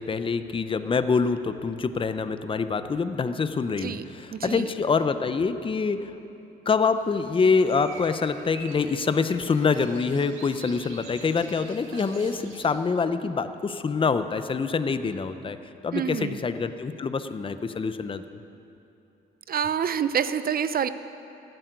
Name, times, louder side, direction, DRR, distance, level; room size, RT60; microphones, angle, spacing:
voice 1, 0.0-6.1 6.7-15.6 15.8-18.4, left 5 dB, 25° left, 11 dB, 0.7 m, -25 dB
voice 2, 4.3-4.6 15.9-16.4 19.5-20.9, right 8 dB, 50° right, 13 dB, 0.6 m, -27 dB
sound 1, 7.0-12.7, right 3 dB, 85° right, 2.1 m, -46 dB
14.0 x 7.8 x 9.4 m, 2.9 s
cardioid pair, 90°, 20 cm